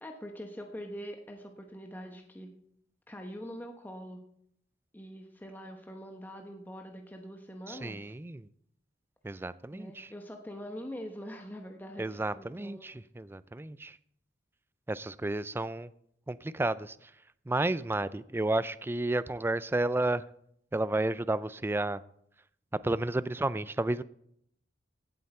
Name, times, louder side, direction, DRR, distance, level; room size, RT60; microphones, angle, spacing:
voice 1, 0.0-2.5 3.1-4.2 4.9-8.1 9.7-12.9, equal, 10° left, 3 dB, 1.0 m, -44 dB
voice 2, 7.7-8.5 9.2-10.1 12.0-14.0 14.9-15.9 16.3-17.0 17.5-20.2 20.7-22.0 22.8-24.0, right 2 dB, 10° right, 16 dB, 0.3 m, -31 dB
17.0 x 7.9 x 4.4 m, 0.70 s
head